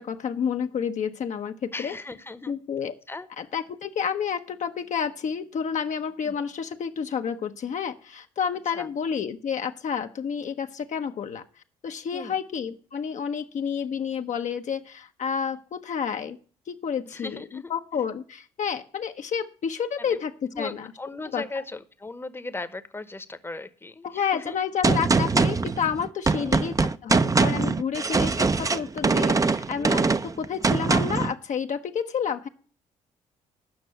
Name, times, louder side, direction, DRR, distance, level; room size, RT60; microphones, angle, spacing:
voice 1, 0.0-1.9 2.5-2.9 3.4-11.4 11.8-16.4 16.7-20.9 21.3-21.4 24.0-30.1 30.4-32.5, left 7 dB, 55° left, 6 dB, 0.8 m, -30 dB
voice 2, 1.7-2.5 3.1-3.3 6.2-6.3 8.7-8.9 12.1-12.3 17.1-17.7 20.0-20.2 20.5-24.6 26.3-26.8, left 2 dB, 15° left, 12 dB, 1.0 m, -37 dB
Gunshot gunfire, 24.8-31.3, right 4 dB, 20° right, 0.6 m, -23 dB
8.8 x 6.1 x 8.0 m, 0.43 s
hypercardioid pair, 50°, 15 cm